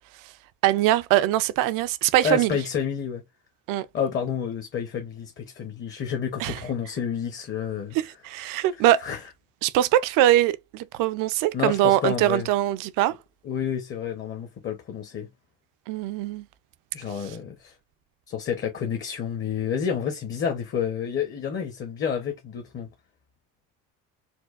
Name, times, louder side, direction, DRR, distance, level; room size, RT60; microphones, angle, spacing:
voice 1, 0.6-2.6 3.7-3.9 6.4-6.6 7.9-9.1 9.6-13.2 15.9-16.5, right 14 dB, 80° right, 0.5 m, -22 dB
voice 2, 2.2-3.2 3.9-8.0 8.5-8.6 9.0-9.2 11.5-12.5 13.4-15.3 16.9-17.7 18.3-22.9, left 7 dB, 35° left, 0.8 m, -29 dB
4.4 x 2.3 x 2.4 m
cardioid pair, 130°, 32 cm